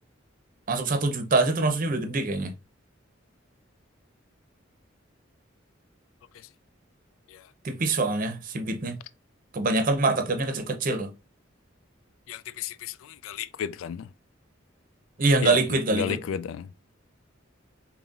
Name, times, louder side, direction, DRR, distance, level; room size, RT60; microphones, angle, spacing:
voice 1, 0.7-2.5 7.6-9.0 9.5-11.1 15.2-16.2, right 3 dB, 45° right, 0.7 m, -24 dB
voice 2, 12.3-14.1 15.4-16.7, left 8 dB, 90° left, 0.3 m, -33 dB
5.3 x 2.9 x 2.4 m
head